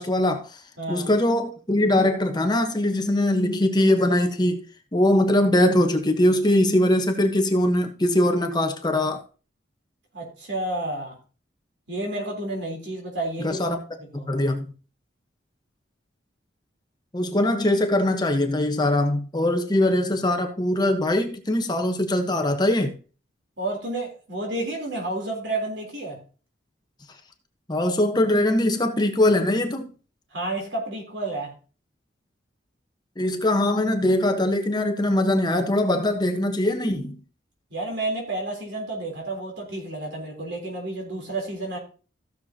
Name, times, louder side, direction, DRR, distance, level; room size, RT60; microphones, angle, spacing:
voice 1, 0.0-0.6 0.9-4.6 4.9-9.2 13.4-13.8 14.1-14.7 17.1-22.9 27.7-29.9 33.2-37.2, left 1 dB, 20° left, 1.1 m, -22 dB
voice 2, 0.8-1.1 10.1-11.2 11.9-13.6 14.1-14.3 23.6-26.2 30.3-31.5 37.7-41.8, right 2 dB, 70° right, 3.6 m, -30 dB
15.5 x 6.8 x 2.9 m
head